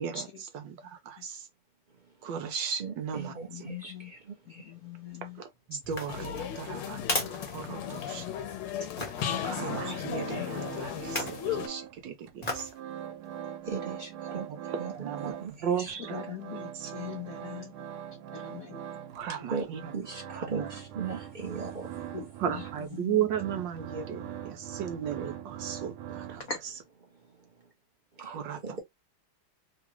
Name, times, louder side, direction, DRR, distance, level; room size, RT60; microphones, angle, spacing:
voice 1, 0.0-1.5 2.2-3.3 3.6-3.7 5.2-8.3 9.4-12.7 14.7-16.2 16.5-16.9 19.1-19.8 20.3-20.7 22.4-26.4 28.2-28.6, right 8 dB, 70° right, 1.3 m, -35 dB
voice 2, 2.8-3.9 4.6-4.7 13.7-14.5 14.8-15.5 15.8-15.9 19.5-19.7 19.9-21.9 28.6-28.8, right 5 dB, 35° right, 0.8 m, -37 dB
voice 3, 3.5-4.1 4.5-5.4 6.4-6.5 9.2-9.9 10.4-10.7 16.1-17.7 18.3-18.8 22.1-22.3 23.0-23.2 24.0-24.1 26.5-26.6, left 7 dB, 70° left, 0.8 m, -41 dB
sound 1, 5.8-8.3 9.0-9.3 11.0-11.5 12.4-12.8 13.3-13.4, left 2 dB, 30° left, 0.8 m, -35 dB
sound 2, 6.1-11.7, left 9 dB, 90° left, 1.6 m, -35 dB
sound 3, 9.6-12.0 12.3-15.6 15.9-26.8, right 9 dB, 90° right, 1.5 m, -42 dB
3.6 x 2.4 x 2.9 m
omnidirectional pair, 2.3 m